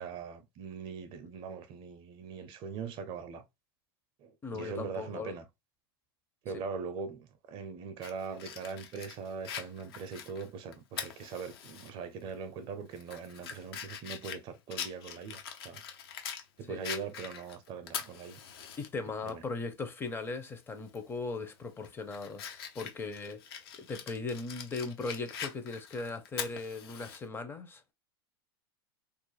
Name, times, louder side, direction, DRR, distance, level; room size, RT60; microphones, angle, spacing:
voice 1, 0.0-3.4 4.2-5.4 6.4-15.8 16.6-18.4 19.2-19.4, right 5 dB, 45° right, 0.4 m, -41 dB
voice 2, 4.4-5.3 6.5-6.6 16.7-16.8 18.8-27.9, left 3 dB, 15° left, 0.5 m, -38 dB
Fire, 8.0-11.9 12.3-12.4 12.9-16.4 16.8-18.9 19.3-19.4 20.9-21.1 21.6-27.2, left 8 dB, 70° left, 0.6 m, -43 dB
2.4 x 2.1 x 3.1 m
hypercardioid pair, 105°, 13 cm